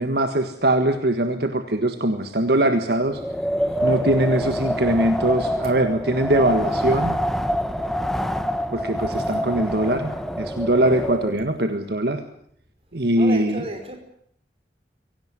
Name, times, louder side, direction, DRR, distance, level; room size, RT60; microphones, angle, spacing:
voice 1, 0.0-3.2 3.8-7.2 8.7-12.2 12.9-13.6, right 1 dB, 65° right, 8 dB, 1.6 m, -22 dB
Wind, 3.0-11.5, equal, ahead, 1.2 m, -26 dB
voice 2, 3.5-4.1 5.6-5.7 13.1-14.0, right 1 dB, 35° right, 6 dB, 5.1 m, -35 dB
24.0 x 17.5 x 9.6 m, 0.67 s
head